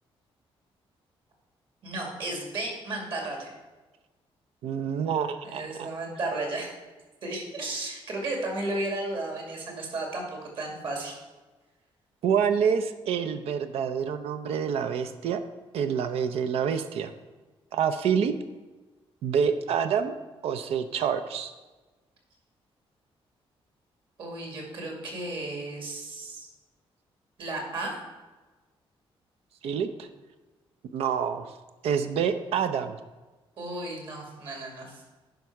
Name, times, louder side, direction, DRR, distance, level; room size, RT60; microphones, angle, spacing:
voice 1, 1.8-3.5 5.4-6.8 7.2-11.2 24.2-26.5 27.4-27.9 33.6-35.0, right 2 dB, 55° right, 0 dB, 2.4 m, -34 dB
voice 2, 4.6-5.9 9.7-9.8 12.2-15.4 15.7-17.1 17.7-18.3 19.2-20.1 20.4-21.5 29.6-30.1 30.9-31.5 31.8-33.0, right 7 dB, 85° right, 9 dB, 0.6 m, -27 dB
10.5 x 5.3 x 4.7 m, 1.2 s
cardioid pair, 155°, 10 cm